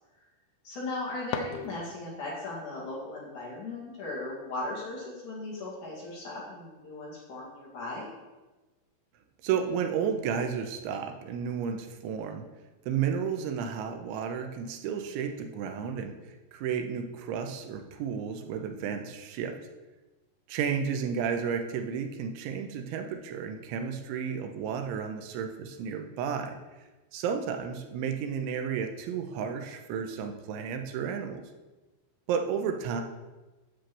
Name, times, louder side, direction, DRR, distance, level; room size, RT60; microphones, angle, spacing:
voice 1, 0.6-8.1, left 2 dB, 50° left, -5 dB, 2.6 m, -37 dB
sound 1, 0.8-2.3, left 7 dB, 85° left, 2.2 m, -39 dB
voice 2, 9.4-12.5 12.9-19.6 20.5-26.6 27.1-31.4 32.3-33.0, right 7 dB, 85° right, 5 dB, 3.1 m, -32 dB
10.0 x 5.2 x 7.5 m, 1.2 s
omnidirectional pair, 5.4 m